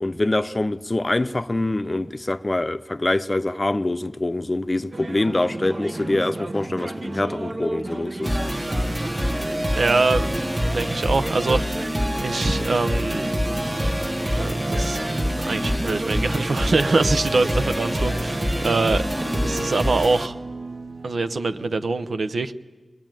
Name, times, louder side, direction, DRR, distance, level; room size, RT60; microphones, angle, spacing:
voice 1, 0.0-8.4, left 2 dB, 30° left, 0.7 m, -24 dB
sound 1, 4.9-21.9, right 2 dB, 45° right, 0.8 m, -34 dB
sound 2, 8.2-20.3, equal, 15° right, 1.2 m, -26 dB
voice 2, 9.7-13.3 14.3-20.4 21.0-22.5, right 3 dB, 80° right, 0.9 m, -24 dB
22.0 x 21.5 x 9.1 m
wide cardioid pair, 90°, 0 cm